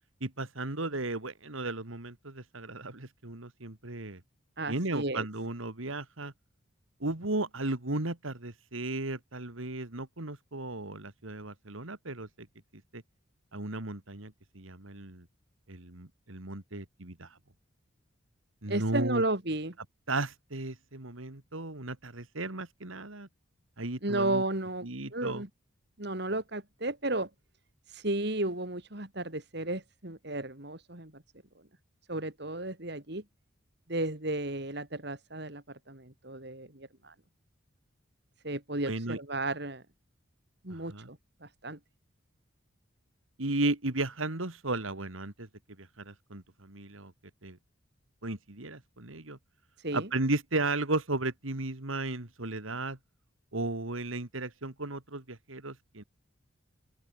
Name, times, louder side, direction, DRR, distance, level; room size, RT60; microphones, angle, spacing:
voice 1, 0.2-4.2 4.7-6.3 7.0-12.5 12.9-13.0 13.5-15.2 15.7-17.4 18.6-19.2 20.1-23.3 23.8-24.4 24.8-25.4 38.9-39.2 40.7-41.1 43.4-45.5 45.8-47.1 47.4-47.6 48.2-49.4 49.9-53.0 53.5-56.0, right 2 dB, 75° right, 2.3 m, -35 dB
voice 2, 4.6-5.3 18.7-19.7 24.0-25.5 26.0-27.3 27.9-31.2 32.1-33.2 33.9-37.1 38.4-39.8 40.6-41.8 49.8-50.1, right 2 dB, 50° right, 2.7 m, -33 dB
open air
head